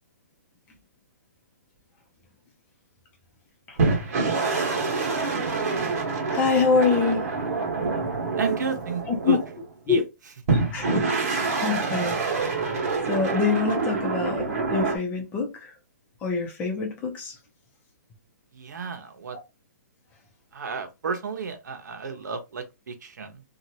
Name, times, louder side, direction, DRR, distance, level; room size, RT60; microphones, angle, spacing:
sound 1, 3.8-9.7 10.5-15.0, right 4 dB, 55° right, 1.2 m, -26 dB
voice 1, 6.3-7.2 9.1-9.4 9.9-10.0 10.7-12.2 13.1-15.7 16.2-17.3, left 5 dB, 15° left, 0.8 m, -25 dB
voice 2, 8.4-9.4 9.9-10.0 18.5-19.4 20.5-23.4, right 5 dB, 75° right, 0.9 m, -32 dB
2.8 x 2.4 x 2.7 m
hypercardioid pair, 155°, 10 cm